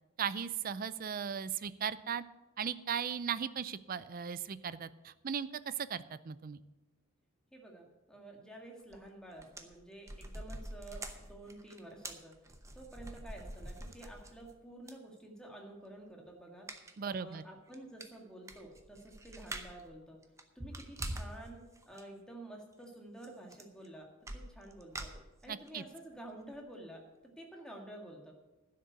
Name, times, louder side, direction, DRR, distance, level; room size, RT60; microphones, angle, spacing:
voice 1, 0.2-2.2 2.6-6.6 17.0-17.4 25.5-25.8, right 7 dB, 40° right, 16 dB, 0.4 m, -37 dB
voice 2, 7.5-12.4 12.7-16.7 17.0-20.2 20.6-21.6 21.9-24.1 24.3-25.1 25.4-27.0 27.4-28.3, right 1 dB, 5° left, 0 dB, 1.8 m, -50 dB
sound 1, 8.9-9.1 9.4-14.5 14.9-15.0 16.7-17.0 17.3-17.4 17.7-17.8 18.0-19.9 20.2-21.4 21.8-22.0 23.2-23.3 23.5-23.9 24.3-25.7 26.1-26.2 26.6-26.7, right 1 dB, 15° right, 0.8 m, -45 dB
11.5 x 6.6 x 8.1 m, 1.1 s
head